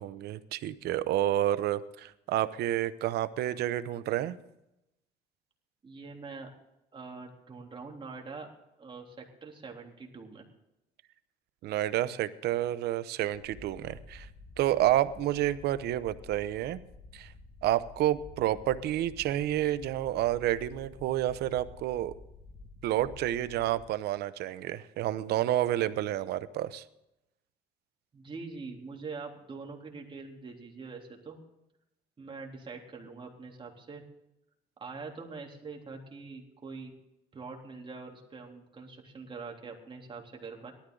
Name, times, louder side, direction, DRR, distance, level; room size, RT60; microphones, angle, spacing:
voice 1, 0.0-4.4 11.6-14.3 14.6-16.8 17.1-17.3 17.6-22.1 22.8-26.8, right 13 dB, 75° right, 14 dB, 0.9 m, -29 dB
voice 2, 5.8-6.5 6.9-8.5 8.8-10.4 28.1-31.4 32.2-34.0 34.8-36.9 37.3-40.7, right 4 dB, 30° right, 0 dB, 3.4 m, -44 dB
sound 1, 13.3-23.9, left 3 dB, 50° left, 2.1 m, -51 dB
18.5 x 13.0 x 3.9 m, 0.88 s
cardioid pair, 110°, 17 cm